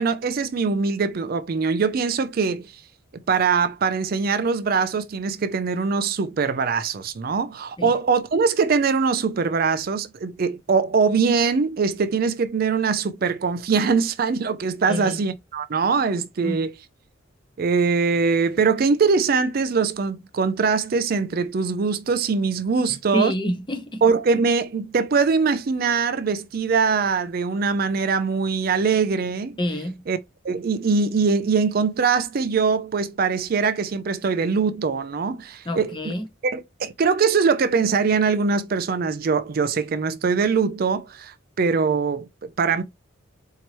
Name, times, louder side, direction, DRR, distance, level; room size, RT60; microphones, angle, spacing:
voice 1, 0.0-2.7 3.1-16.7 17.6-23.3 24.0-29.6 30.1-30.2 30.4-36.1 36.4-42.8, right 5 dB, 45° right, 0.4 m, -22 dB
voice 2, 14.9-15.2 16.4-16.6 23.1-24.0 29.6-30.0 35.6-36.3, equal, 25° left, 0.8 m, -27 dB
4.5 x 2.8 x 2.9 m
head